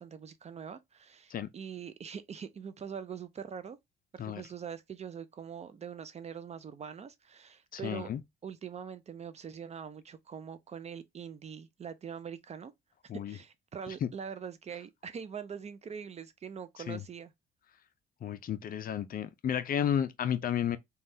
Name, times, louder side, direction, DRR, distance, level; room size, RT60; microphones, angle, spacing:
voice 1, 0.0-3.8 4.1-8.1 8.4-12.7 13.1-17.3, right 7 dB, 35° right, 0.4 m, -43 dB
voice 2, 7.7-8.2 13.1-13.4 14.0-14.1 16.9-17.0 18.2-20.8, left 9 dB, 45° left, 0.4 m, -32 dB
3.3 x 2.3 x 2.6 m
cardioid pair, 100°, 20 cm